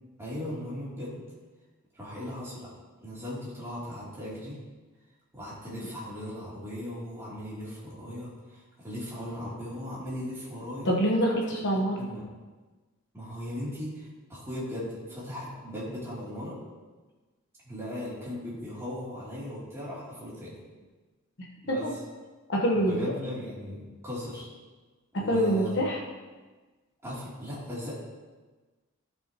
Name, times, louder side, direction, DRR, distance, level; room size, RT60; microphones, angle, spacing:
voice 1, 0.2-1.2 1.9-2.7 3.0-4.6 5.3-10.9 12.0-12.3 13.1-16.6 17.6-20.6 21.6-22.0 22.7-24.5 25.2-25.8 27.0-28.0, left 1 dB, 10° right, -9 dB, 3.1 m, -38 dB
voice 2, 10.8-12.0 21.7-21.9 22.5-22.9 25.1-26.0, equal, 55° left, -2 dB, 1.2 m, -25 dB
16.0 x 5.8 x 3.0 m, 1.3 s
head